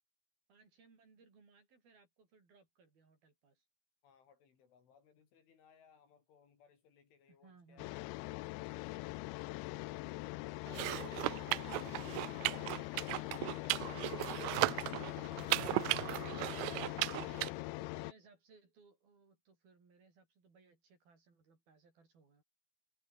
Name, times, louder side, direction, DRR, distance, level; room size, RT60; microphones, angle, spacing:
voice 1, 0.5-3.6 7.3-8.0 14.8-22.4, right 4 dB, 50° right, 7.8 m, -65 dB
voice 2, 4.0-7.9, left 7 dB, 70° left, 6.9 m, -67 dB
sound 1, 7.8-18.1, left 23 dB, 90° left, 2.6 m, -42 dB
sound 2, 10.7-17.5, right 23 dB, 85° right, 3.1 m, -36 dB
omnidirectional pair, 5.7 m